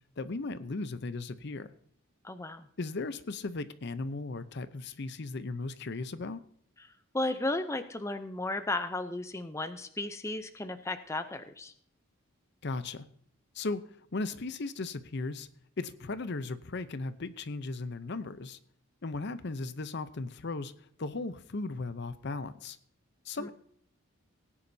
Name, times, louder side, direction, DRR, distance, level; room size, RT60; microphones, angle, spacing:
voice 1, 0.2-1.7 2.8-6.4 12.6-13.0 13.5-13.8 14.1-15.5 15.8-18.6 19.0-20.7 21.0-22.8 23.2-23.5, left 3 dB, 55° left, 13 dB, 0.7 m, -36 dB
voice 2, 2.2-2.7 6.8-11.7 23.4-23.5, left 2 dB, 15° left, 9 dB, 0.6 m, -34 dB
18.5 x 9.9 x 2.7 m, 0.62 s
head